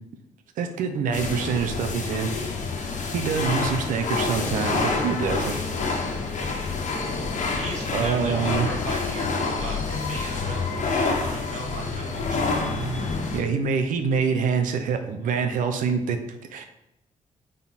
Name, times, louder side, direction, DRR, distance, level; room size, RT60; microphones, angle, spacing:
voice 1, 0.6-2.5 3.1-5.6 6.2-6.3 7.9-8.7 13.3-16.7, right 6 dB, 90° right, 6 dB, 0.9 m, -26 dB
sound 1, 1.1-13.4, left 3 dB, 70° left, 1.3 m, -27 dB
voice 2, 7.5-12.5, right 2 dB, 60° right, -1 dB, 2.3 m, -37 dB
8.6 x 4.0 x 4.2 m, 0.85 s
cardioid pair, 80°, 13 cm